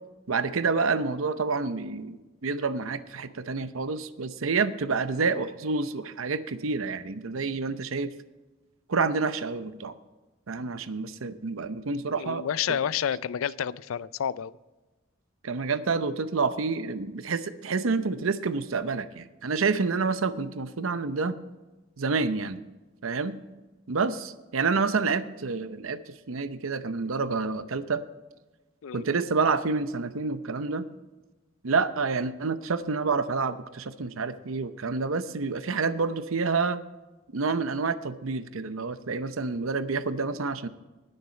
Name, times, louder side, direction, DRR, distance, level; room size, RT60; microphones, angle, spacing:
voice 1, 0.3-8.1 8.9-9.9 10.5-12.8 15.4-21.4 22.0-22.6 23.0-23.4 23.9-28.0 28.9-30.9 31.6-36.8 37.3-40.7, right 4 dB, 90° right, 12 dB, 0.7 m, -28 dB
voice 2, 12.2-14.5 28.8-29.1, left 8 dB, 90° left, 19 dB, 0.4 m, -29 dB
19.5 x 6.7 x 4.4 m, 1.2 s
head